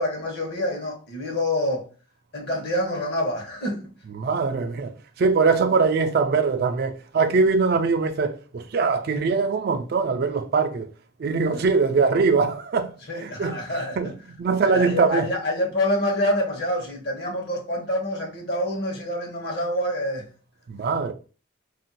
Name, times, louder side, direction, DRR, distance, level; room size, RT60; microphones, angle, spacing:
voice 1, 0.0-1.9 2.3-3.9 11.5-11.7 13.1-14.1 14.6-20.3, left 1 dB, 55° left, 1.0 m, -27 dB
voice 2, 4.1-10.9 11.2-13.6 14.0-14.1 14.4-15.3 20.7-21.1, right 4 dB, 50° right, 0.3 m, -22 dB
2.5 x 2.2 x 3.9 m
head